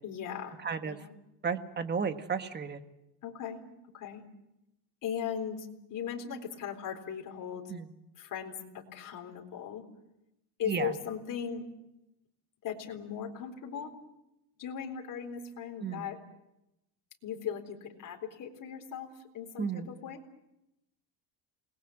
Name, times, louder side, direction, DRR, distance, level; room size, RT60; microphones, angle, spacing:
voice 1, 0.0-1.2 3.2-3.6 3.9-4.2 5.0-7.6 8.2-9.8 10.6-11.7 12.6-14.0 14.6-16.2 17.2-20.2, left 8 dB, 45° left, 2 dB, 4.0 m, -38 dB
voice 2, 0.6-1.0 1.4-2.8 7.7-7.9 10.7-10.9 15.8-16.1 19.6-19.9, right 6 dB, 25° right, 8 dB, 1.5 m, -33 dB
28.5 x 20.0 x 7.8 m, 0.88 s
cardioid pair, 145°, 44 cm